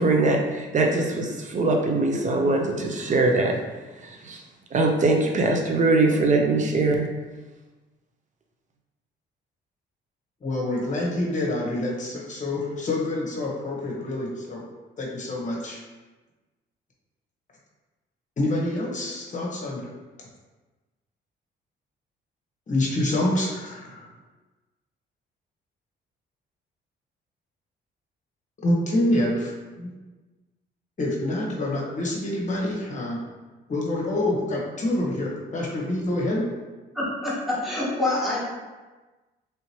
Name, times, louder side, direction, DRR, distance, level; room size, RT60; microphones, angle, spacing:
voice 1, 0.0-3.6 4.0-4.4 4.7-7.1, right 2 dB, 40° right, 2 dB, 0.6 m, -22 dB
voice 2, 10.4-14.6 15.0-15.8 18.4-19.8 22.7-24.1 28.6-29.5 29.8-29.9 31.0-33.2 33.7-36.5, left 1 dB, 40° left, -3 dB, 1.0 m, -26 dB
voice 3, 36.9-38.4, left 2 dB, ahead, -8 dB, 1.4 m, -26 dB
3.4 x 2.9 x 2.8 m, 1.2 s
cardioid pair, 90°, 20 cm